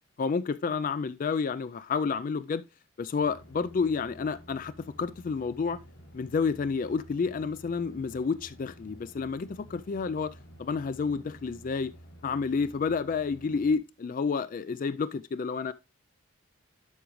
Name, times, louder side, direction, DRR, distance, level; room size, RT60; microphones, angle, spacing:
voice 1, 0.2-2.6 3.0-5.8 6.1-11.9 12.2-15.7, left 5 dB, 40° left, 0.3 m, -30 dB
sound 1, 3.2-13.8, equal, 75° left, 2.5 m, -52 dB
11.5 x 5.0 x 3.0 m
head